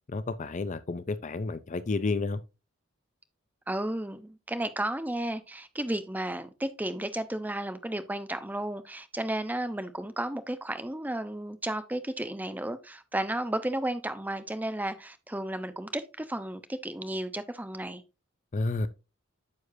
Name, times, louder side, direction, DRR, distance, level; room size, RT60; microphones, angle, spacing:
voice 1, 0.1-2.4 18.5-18.9, left 3 dB, 35° left, 0.5 m, -30 dB
voice 2, 3.7-18.0, right 1 dB, 10° right, 0.7 m, -33 dB
9.6 x 6.4 x 2.7 m
head